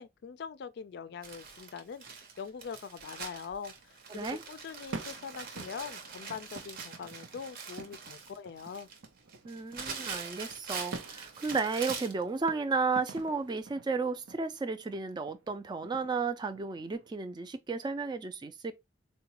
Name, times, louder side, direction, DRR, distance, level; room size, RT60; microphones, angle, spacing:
voice 1, 0.0-8.9, left 6 dB, 60° left, 0.3 m, -43 dB
Crumpling crinkling, 1.2-12.2 13.1-13.2 13.6-13.7, right 5 dB, 50° right, 0.7 m, -43 dB
sound 1, 3.8-17.1, right 3 dB, 85° right, 0.5 m, -48 dB
voice 2, 4.1-4.4 9.4-18.7, right 4 dB, 25° right, 0.3 m, -33 dB
3.8 x 2.1 x 2.8 m
head